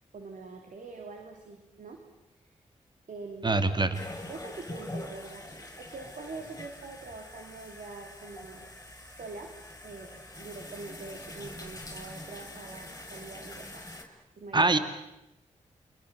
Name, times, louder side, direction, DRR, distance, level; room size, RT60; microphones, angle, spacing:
voice 1, 0.1-2.0 2.5-2.6 3.1-3.6 4.2-9.6 9.8-14.8, right 3 dB, 70° right, 4 dB, 3.4 m, -44 dB
voice 2, 3.4-4.0 14.5-14.8, right 2 dB, 35° right, 10 dB, 2.4 m, -24 dB
sound 1, 3.9-14.0, left 1 dB, 20° left, 6.3 m, -44 dB
29.5 x 24.5 x 7.7 m, 0.92 s
cardioid pair, 50°, 14 cm